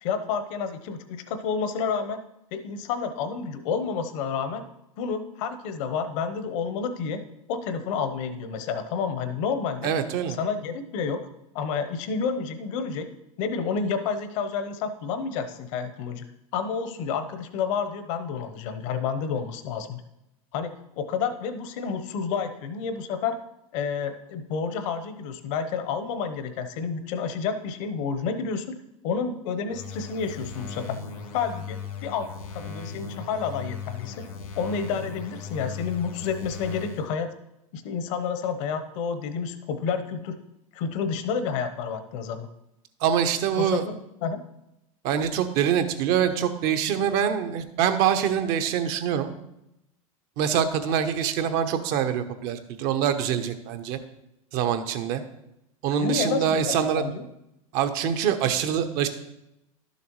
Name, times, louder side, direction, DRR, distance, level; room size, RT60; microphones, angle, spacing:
voice 1, 0.0-2.2 2.5-4.6 5.0-7.2 7.5-9.9 10.4-11.2 11.5-13.1 13.4-16.2 16.5-20.0 20.5-23.4 23.7-28.7 29.0-31.0 31.3-34.3 34.6-37.3 37.7-40.4 40.7-42.5 43.6-43.9 44.2-44.4 56.0-57.2, left 6 dB, 60° left, 9 dB, 1.0 m, -30 dB
voice 2, 9.8-10.4 43.0-43.8 45.0-49.3 50.4-54.0 54.5-55.2 55.8-57.0 57.7-59.1, right 8 dB, 55° right, 9 dB, 1.0 m, -25 dB
sound 1, 29.7-37.1, left 5 dB, 85° left, 2.0 m, -38 dB
12.0 x 7.0 x 3.1 m, 0.86 s
hypercardioid pair, 95°, 18 cm